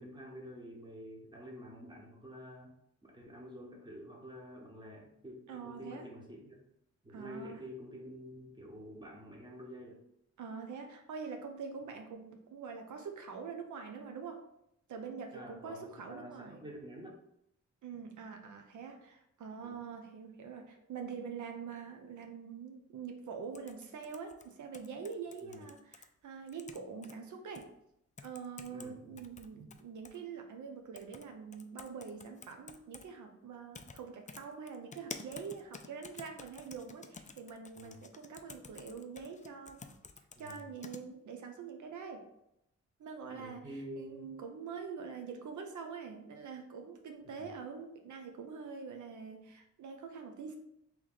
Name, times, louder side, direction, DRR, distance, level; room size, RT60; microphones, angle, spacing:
voice 1, 0.0-2.7 3.0-6.6 7.0-10.0 15.3-17.2 19.6-19.8 25.4-25.7 28.7-29.2 29.5-29.7 37.8-38.0 40.3-40.7 43.3-44.3 47.4-47.5, equal, 15° right, -2 dB, 1.1 m, -48 dB
voice 2, 5.5-6.1 7.1-7.6 10.4-14.4 14.9-16.6 17.8-27.7 28.2-39.9 40.4-42.3 43.0-43.7 44.0-50.6, right 5 dB, 85° right, 4 dB, 0.6 m, -45 dB
sound 1, 23.5-26.1 26.5-27.1 27.6-27.7 28.2-28.9 29.2-30.2 31.0-31.3 31.5-33.1 33.7-34.0 34.3-41.0, left 5 dB, 25° left, 0.4 m, -50 dB
3.2 x 3.0 x 3.8 m, 0.79 s
cardioid pair, 75°, 29 cm